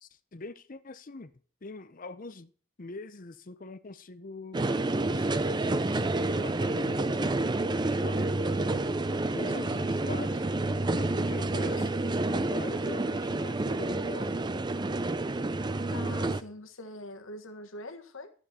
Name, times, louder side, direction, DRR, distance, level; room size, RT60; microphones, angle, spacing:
voice 1, 0.0-1.3 1.6-2.5 2.8-4.6 5.1-8.9 9.3-10.4 11.0-14.3, left 3 dB, 40° left, 0.6 m, -44 dB
sound 1, 4.5-16.4, right 2 dB, 20° right, 0.4 m, -29 dB
voice 2, 15.9-18.3, left 1 dB, 65° left, 1.4 m, -43 dB
14.0 x 8.9 x 4.2 m
head